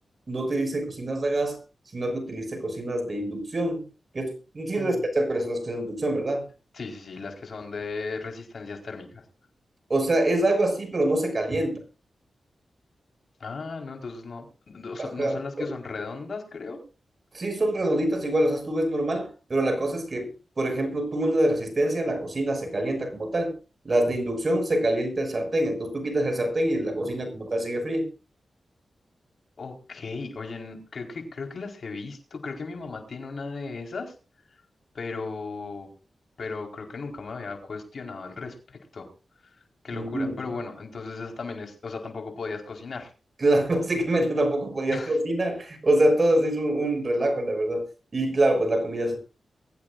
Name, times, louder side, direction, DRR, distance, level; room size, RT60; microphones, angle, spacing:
voice 1, 0.3-1.6 1.9-3.8 4.1-6.4 9.9-11.8 15.0-15.7 17.3-23.6 23.8-28.1 39.9-40.4 43.4-47.8 48.1-49.2, right 1 dB, 45° right, 6.1 m, -25 dB
voice 2, 4.7-5.0 6.7-9.2 13.4-16.8 29.6-34.1 34.9-35.9 36.4-39.1 39.8-43.1 44.9-45.2, left 4 dB, 65° left, 4.5 m, -36 dB
23.0 x 15.5 x 2.6 m
cardioid pair, 65°, 0 cm